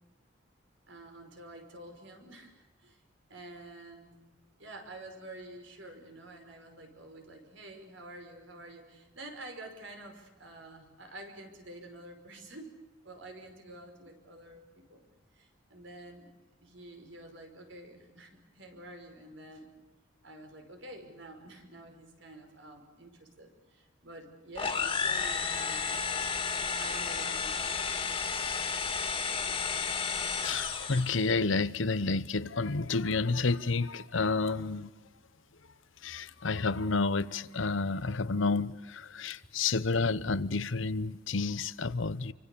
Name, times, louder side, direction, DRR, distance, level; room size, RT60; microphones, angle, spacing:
voice 1, 0.9-3.0 3.3-4.1 4.6-12.8 13.0-15.1 15.3-16.3 16.6-19.7 20.2-26.0 26.8-28.1, right 1 dB, 70° right, 5.4 m, -48 dB
sound 1, 24.6-31.3, left 5 dB, 25° left, 2.6 m, -32 dB
voice 2, 30.4-34.9 36.0-42.3, left 3 dB, 75° left, 0.9 m, -30 dB
28.5 x 24.5 x 7.0 m
head